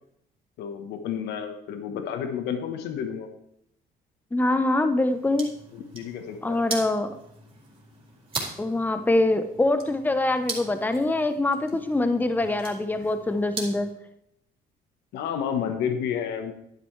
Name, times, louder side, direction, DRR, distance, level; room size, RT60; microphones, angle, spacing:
voice 1, 0.6-3.3 5.7-6.6 15.1-16.5, left 8 dB, 85° left, 6 dB, 1.2 m, -31 dB
voice 2, 4.3-5.5 6.4-7.1 8.6-13.9, left 2 dB, 10° left, 8 dB, 0.9 m, -24 dB
sound 1, 5.1-13.9, right 3 dB, 30° right, 3.8 m, -40 dB
11.0 x 10.0 x 3.3 m, 0.77 s
cardioid pair, 110°, 17 cm